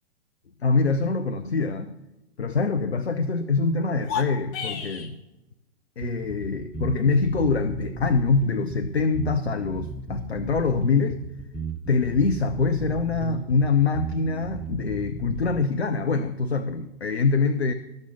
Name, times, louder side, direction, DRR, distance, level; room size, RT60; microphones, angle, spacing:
voice 1, 0.6-2.0 2.4-5.1 6.0-11.2 11.9-17.7, left 4 dB, 80° left, 10 dB, 0.7 m, -24 dB
sound 1, 3.9-5.1, left 7 dB, 35° left, 1.4 m, -31 dB
sound 2, 6.0-15.6, right 2 dB, 5° right, 0.8 m, -35 dB
13.0 x 6.5 x 7.2 m, 0.99 s
figure-of-eight pair, 100°, 31 cm